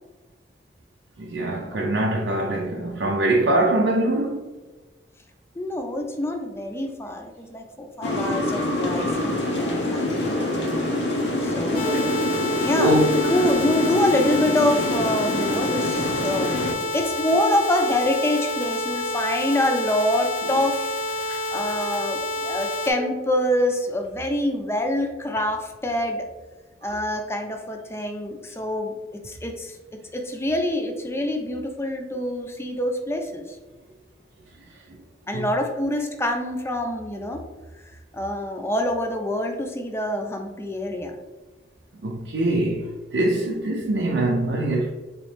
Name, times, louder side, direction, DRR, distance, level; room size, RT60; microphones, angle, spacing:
voice 1, 1.2-4.5 12.8-13.3 21.3-21.7 35.3-35.5 42.0-44.9, right 1 dB, 85° right, 0.5 m, -23 dB
voice 2, 5.6-10.5 11.4-12.1 12.6-21.0 21.5-26.3 26.8-28.9 29.2-29.8 30.1-33.4 35.3-37.4 38.1-41.2, left 1 dB, 15° left, 0.5 m, -26 dB
sound 1, 8.0-16.7, left 1 dB, 85° left, 0.7 m, -25 dB
sound 2, 11.7-22.9, left 1 dB, 50° left, 0.8 m, -29 dB
4.1 x 3.1 x 3.2 m
head